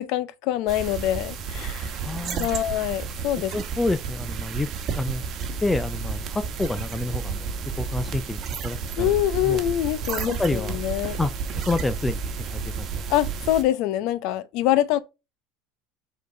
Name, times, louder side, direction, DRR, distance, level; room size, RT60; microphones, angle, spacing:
voice 1, 0.0-2.0 2.4-3.5 9.0-11.2 13.1-15.0, left 13 dB, 65° left, 0.7 m, -25 dB
sound 1, 0.7-13.6, right 6 dB, 45° right, 1.3 m, -31 dB
voice 2, 2.0-2.5 3.5-4.7 5.0-5.2 5.6-7.5 7.8-9.1 9.4-9.6 10.2-10.8 11.2-11.3 11.6-13.0, left 2 dB, 10° left, 0.4 m, -28 dB
5.3 x 4.0 x 5.1 m
supercardioid pair, 120°, 0 cm